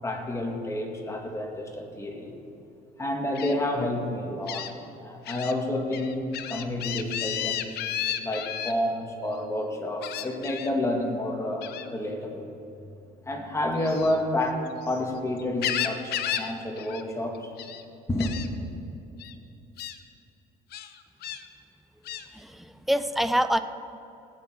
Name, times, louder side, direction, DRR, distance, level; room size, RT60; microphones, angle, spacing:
voice 1, 0.0-2.3 3.0-4.7 5.0-7.8 8.2-12.5 13.3-17.5 18.1-18.4, left 1 dB, 15° left, 1 dB, 2.0 m, -29 dB
Gull seagull, 3.4-3.5 4.5-4.7 5.3-5.5 5.9-8.7 10.0-10.7 11.6-11.9 13.7-15.0 15.4-16.5 16.8-17.0 17.3-17.8 18.2-18.5 19.2-19.3 19.8-20.0 20.7-21.4 22.1-22.3, left 11 dB, 70° left, 0.7 m, -33 dB
voice 2, 22.3-23.6, equal, ahead, 10 dB, 0.5 m, -25 dB
18.5 x 9.0 x 4.6 m, 2.8 s
cardioid pair, 110°, 17 cm